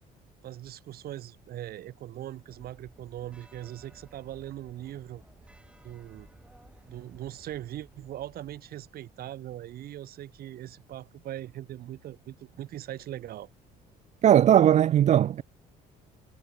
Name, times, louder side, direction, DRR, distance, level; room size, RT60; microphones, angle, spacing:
voice 1, 0.4-5.2 5.8-6.3 6.9-13.5, right 13 dB, 65° right, 2.0 m, -40 dB
sound 1, 2.5-9.0, right 1 dB, 5° right, 5.1 m, -56 dB
voice 2, 14.2-15.4, right 10 dB, 45° right, 0.4 m, -19 dB
cardioid pair, 110°, 17 cm